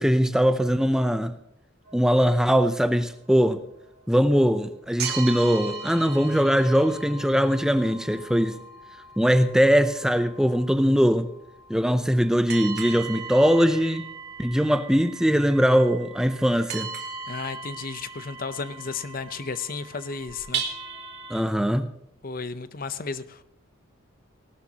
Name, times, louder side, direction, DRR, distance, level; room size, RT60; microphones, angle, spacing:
voice 1, 0.0-1.3 1.9-3.6 4.1-8.6 9.2-11.3 11.7-14.0 14.4-16.9 21.3-21.9, equal, 5° right, 9 dB, 0.5 m, -21 dB
sound 1, 1.9-4.6 5.0-21.4, right 5 dB, 50° right, 2.6 m, -38 dB
voice 2, 17.3-20.6 22.2-23.4, left 4 dB, 45° left, 13 dB, 0.7 m, -33 dB
18.0 x 12.5 x 2.9 m, 0.79 s
head